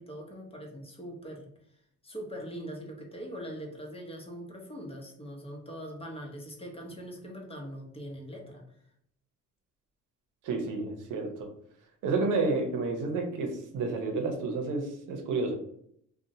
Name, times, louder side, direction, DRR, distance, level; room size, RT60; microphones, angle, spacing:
voice 1, 0.0-1.5 2.0-8.6, equal, 20° left, 1 dB, 0.7 m, -42 dB
voice 2, 10.4-11.5 12.0-15.5, right 3 dB, 90° right, 4 dB, 0.6 m, -30 dB
2.8 x 2.1 x 2.6 m, 0.69 s
cardioid pair, 90°, 30 cm